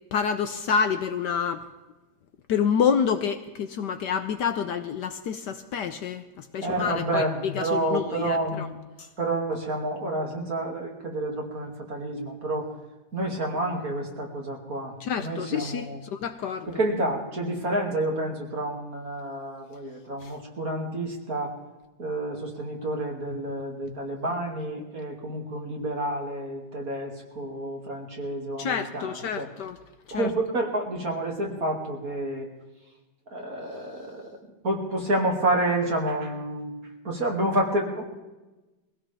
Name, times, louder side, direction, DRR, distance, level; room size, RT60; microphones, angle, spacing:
voice 1, 0.1-1.7 2.5-8.7 9.0-9.1 15.0-16.7 20.2-20.3 23.3-23.4 23.9-24.0 28.6-29.8 30.1-30.3, left 7 dB, 65° left, 9 dB, 1.2 m, -28 dB
voice 2, 6.6-8.8 9.2-12.7 13.1-16.0 16.7-21.6 22.0-29.5 30.1-32.5 33.3-34.4 34.6-36.7 37.0-38.0, right 1 dB, 45° right, 0 dB, 2.8 m, -29 dB
22.5 x 16.5 x 3.5 m, 1.1 s
omnidirectional pair, 2.2 m